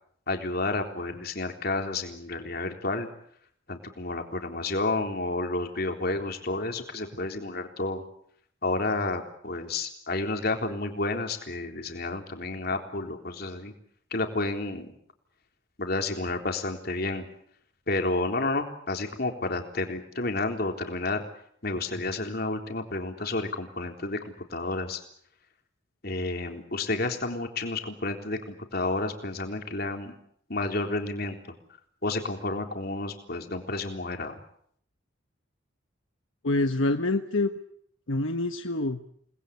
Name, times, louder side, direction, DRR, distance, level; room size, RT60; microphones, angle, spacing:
voice 1, 0.3-3.1 3.7-8.0 8.6-13.7 14.1-14.9 15.8-17.3 17.9-21.2 21.6-25.0 26.0-30.1 30.5-31.4 32.0-34.4, left 2 dB, 50° left, 4 dB, 3.7 m, -30 dB
voice 2, 36.4-37.5 38.1-39.0, left 2 dB, 75° left, 6 dB, 1.4 m, -26 dB
29.5 x 20.5 x 8.4 m, 0.66 s
head